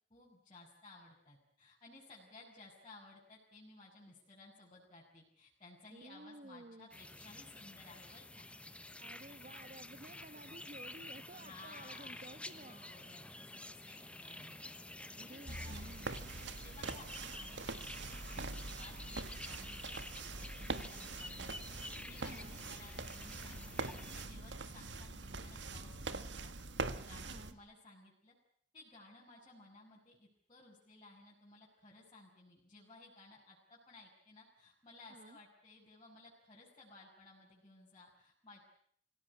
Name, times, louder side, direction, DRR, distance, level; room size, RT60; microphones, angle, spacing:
voice 1, 0.1-8.5 11.4-14.7 15.2-15.9 16.5-19.8 20.1-26.6 26.9-28.3 28.7-38.6, left 2 dB, 30° left, -7 dB, 6.9 m, -58 dB
voice 2, 5.9-6.9 9.0-12.8 15.1-16.1 22.3-22.6 27.2-27.5 35.1-35.4, right 1 dB, 45° right, 8 dB, 1.3 m, -54 dB
sound 1, 6.9-24.3, left 2 dB, 5° left, 1.1 m, -50 dB
sound 2, 15.5-27.5, right 3 dB, 85° right, 1.8 m, -44 dB
26.5 x 18.0 x 10.0 m, 0.67 s
head